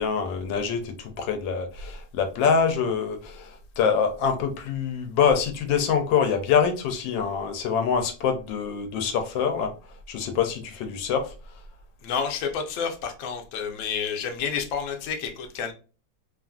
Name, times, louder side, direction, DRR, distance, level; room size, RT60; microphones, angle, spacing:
voice 1, 0.0-9.7 10.1-11.3, left 6 dB, 85° left, 1.3 m, -25 dB
voice 2, 12.0-15.7, left 6 dB, 65° left, 0.9 m, -30 dB
2.9 x 2.4 x 2.3 m
omnidirectional pair, 2.0 m